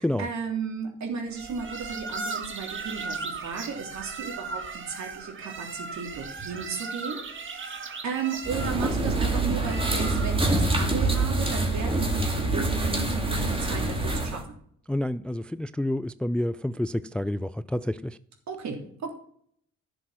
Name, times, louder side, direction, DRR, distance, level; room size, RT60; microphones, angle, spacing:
voice 1, 0.0-7.2 7.5-14.4 18.5-19.1, right 5 dB, 65° right, 3.2 m, -34 dB
sound 1, 1.3-10.5, right 4 dB, 40° right, 1.6 m, -37 dB
sound 2, 8.4-14.4, right 2 dB, 20° right, 2.4 m, -25 dB
voice 2, 14.9-18.2, left 1 dB, 5° left, 0.3 m, -29 dB
11.5 x 6.8 x 5.9 m
cardioid pair, 90°, 30 cm